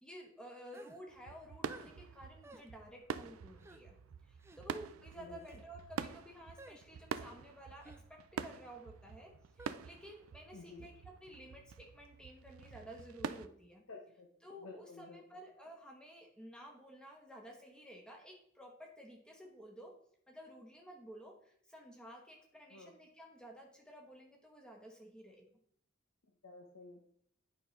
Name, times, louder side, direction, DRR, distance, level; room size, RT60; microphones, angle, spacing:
voice 1, 0.0-3.9 4.2-13.8 14.4-19.9 20.3-25.5, equal, 5° left, 1 dB, 1.1 m, -53 dB
sound 1, 0.7-1.0 1.7-1.9 2.4-2.7 3.6-3.8 4.4-4.6 5.4-5.6 6.6-6.8 7.8-8.0 9.6-9.8, right 2 dB, 10° right, 0.3 m, -54 dB
sound 2, 1.1-13.5, right 6 dB, 85° right, 0.4 m, -46 dB
voice 2, 10.5-10.9 13.9-14.3 14.6-15.2 22.7-22.9 26.4-27.0, left 3 dB, 85° left, 1 dB, 0.9 m, -52 dB
8.7 x 5.3 x 3.2 m, 0.65 s
head